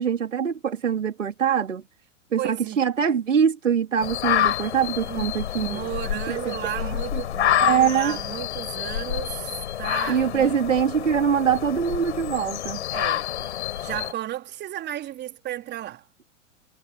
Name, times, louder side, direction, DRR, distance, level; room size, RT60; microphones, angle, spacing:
voice 1, 0.0-1.8 2.3-5.8 6.3-6.9 7.6-8.2 10.1-12.8, right 7 dB, 75° right, 3.2 m, -23 dB
voice 2, 2.4-2.8 5.1-10.6 12.9-16.1, right 13 dB, 25° right, 3.7 m, -34 dB
sound 1, 4.0-14.1, left 12 dB, 60° left, 6.4 m, -28 dB
figure-of-eight pair, 100°, 38 cm